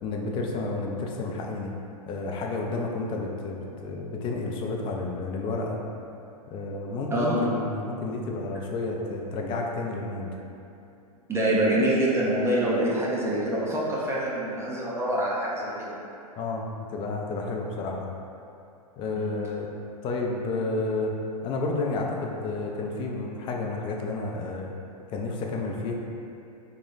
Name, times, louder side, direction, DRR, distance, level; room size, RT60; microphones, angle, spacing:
voice 1, 0.0-1.7 2.1-5.8 6.5-10.3 16.4-18.1 19.0-19.7 20.0-21.1 21.4-24.7 25.1-25.9, left 3 dB, 25° left, 0 dB, 0.5 m, -31 dB
voice 2, 11.3-16.0 19.1-19.3, right 1 dB, 15° right, -6 dB, 0.6 m, -25 dB
3.2 x 2.9 x 3.8 m, 2.7 s
hypercardioid pair, 105°, 20 cm